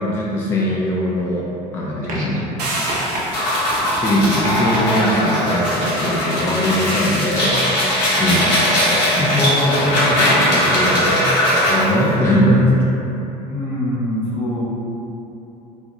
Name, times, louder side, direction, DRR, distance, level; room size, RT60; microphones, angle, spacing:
voice 1, 0.0-1.5 1.7-2.4 2.8-2.9 3.9-8.4 9.1-11.2 11.5-12.8, left 1 dB, 10° left, -5 dB, 0.3 m, -20 dB
sound 1, 2.0-2.6 2.9-3.2 3.7-5.0 5.5-6.1 7.2-7.3, right 1 dB, 40° right, 0.6 m, -30 dB
voice 2, 2.2-2.5 8.2-8.6 13.5-14.6, left 1 dB, 55° left, -7 dB, 0.9 m, -25 dB
sound 2, 2.6-3.9, right 1 dB, 80° right, 0.6 m, -26 dB
sound 3, 3.3-12.0, equal, 85° left, 0.8 m, -19 dB
2.5 x 2.2 x 2.9 m, 2.9 s
hypercardioid pair, 75°, 20 cm